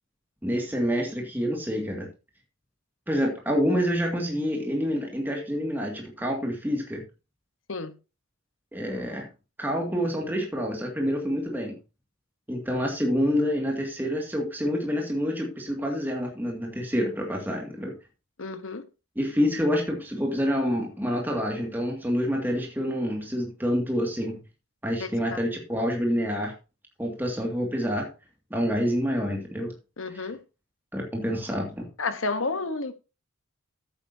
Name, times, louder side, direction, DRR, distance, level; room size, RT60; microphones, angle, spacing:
voice 1, 0.4-2.1 3.1-7.0 8.7-9.3 9.6-11.7 12.5-17.9 19.2-24.4 24.8-26.5 27.0-28.1 28.5-29.7 30.1-30.3 30.9-31.9, equal, 10° right, 2.2 m, -27 dB
voice 2, 18.4-18.8 25.0-25.4 30.0-30.4 32.0-32.9, left 3 dB, 65° left, 1.2 m, -31 dB
13.5 x 8.8 x 2.8 m
head